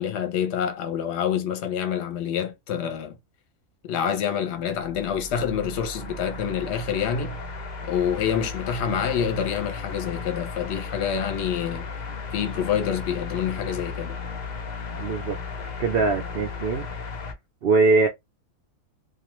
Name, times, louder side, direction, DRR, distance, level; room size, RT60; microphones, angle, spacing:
voice 1, 0.0-3.2 3.8-7.4 7.8-11.8 12.3-14.2, left 8 dB, 55° left, 0.9 m, -27 dB
sound 1, 4.7-17.3, left 4 dB, 75° left, 0.4 m, -35 dB
voice 2, 14.9-15.4 15.8-16.9 17.6-18.1, right 4 dB, 75° right, 0.5 m, -22 dB
2.4 x 2.3 x 3.0 m
omnidirectional pair, 1.5 m